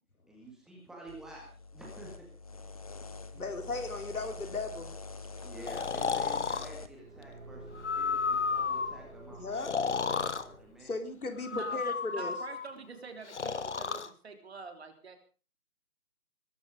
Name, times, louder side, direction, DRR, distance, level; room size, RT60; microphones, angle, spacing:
voice 1, 0.3-2.7 5.4-9.4 9.7-11.0, right 1 dB, ahead, -3 dB, 2.0 m, -49 dB
sound 1, 1.1-6.9, left 4 dB, 25° left, 1.0 m, -45 dB
voice 2, 3.3-4.9 9.3-9.7 10.9-12.3, left 3 dB, 75° left, 7 dB, 4.3 m, -36 dB
voice 3, 5.2-5.5 11.5-11.8 12.2-15.2, right 5 dB, 45° right, 6 dB, 3.6 m, -46 dB
Breathing, 5.7-6.7 7.8-9.0 9.6-10.4 11.4-12.7 13.3-14.1, left 5 dB, 50° left, 1.4 m, -32 dB
Car / Engine, 6.6-11.1, right 2 dB, 70° right, 5.1 m, -50 dB
21.5 x 12.5 x 5.1 m, 0.37 s
figure-of-eight pair, 160°, 43 cm